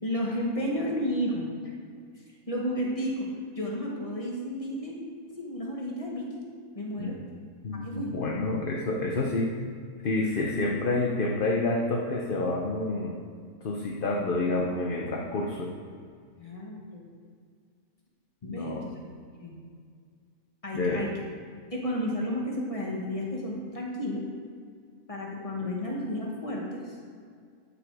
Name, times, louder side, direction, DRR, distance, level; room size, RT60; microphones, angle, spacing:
voice 1, 0.0-1.7 2.5-3.3 3.5-5.0 5.3-6.4 6.7-7.2 7.8-8.1 16.4-17.0 18.4-18.9 19.4-19.5 20.6-21.1 21.7-24.2 25.1-26.9, equal, 20° left, -2 dB, 1.8 m, -32 dB
voice 2, 7.6-9.6 10.0-13.2 13.6-15.7 18.4-18.9 20.7-21.0 25.6-25.7, left 2 dB, 40° left, 0 dB, 0.9 m, -29 dB
12.5 x 6.9 x 4.9 m, 2.2 s
omnidirectional pair, 1.6 m